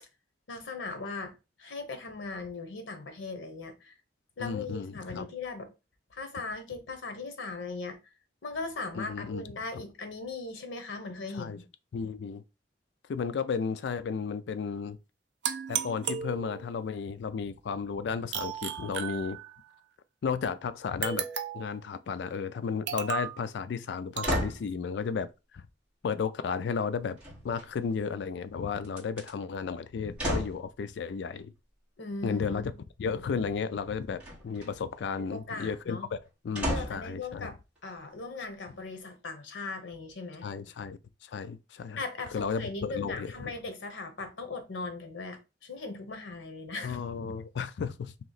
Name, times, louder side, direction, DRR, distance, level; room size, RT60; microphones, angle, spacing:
voice 1, 0.5-1.3 1.6-3.9 4.4-5.7 6.1-8.0 8.4-11.6 32.0-32.7 35.2-36.1 36.7-37.6 37.8-40.5 42.0-47.0, left 3 dB, 90° left, 0.8 m, -38 dB
voice 2, 4.4-5.3 8.9-9.4 9.7-9.8 11.3-11.6 11.9-12.4 13.1-15.0 15.7-19.4 20.2-21.3 21.5-25.6 26.0-27.2 27.4-31.5 32.2-32.7 33.0-36.2 36.4-37.5 40.4-42.0 42.3-43.5 46.8-48.1, left 5 dB, 70° left, 0.3 m, -33 dB
sound 1, 15.4-16.9 18.3-19.8 21.0-21.8 22.9-23.4 24.2-24.5, right 8 dB, 70° right, 0.5 m, -35 dB
sound 2, 24.2-24.7 27.2-27.9 28.8-29.3 30.2-30.6 34.2-34.7 36.5-37.1 37.8-37.9, equal, 5° right, 1.5 m, -32 dB
3.0 x 2.8 x 3.9 m
head